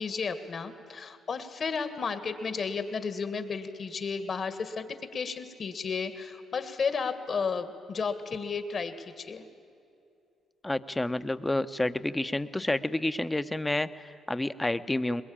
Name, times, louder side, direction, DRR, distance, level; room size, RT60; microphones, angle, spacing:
voice 1, 0.0-9.4, left 5 dB, 50° left, 9 dB, 1.9 m, -33 dB
voice 2, 10.6-15.2, left 1 dB, 15° left, 11 dB, 0.9 m, -29 dB
22.0 x 21.0 x 8.8 m, 2.6 s
supercardioid pair, 60°, 0 cm